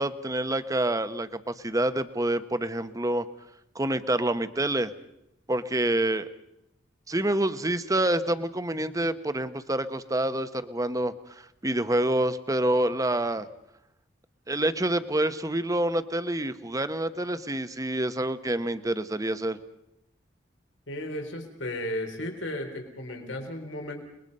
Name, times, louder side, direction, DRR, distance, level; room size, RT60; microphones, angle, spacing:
voice 1, 0.0-3.3 3.7-4.9 5.5-6.3 7.1-13.5 14.5-19.6, right 1 dB, 20° right, 11 dB, 1.0 m, -27 dB
voice 2, 20.9-24.0, left 1 dB, 85° left, 4 dB, 3.9 m, -34 dB
30.0 x 21.0 x 5.4 m, 0.81 s
head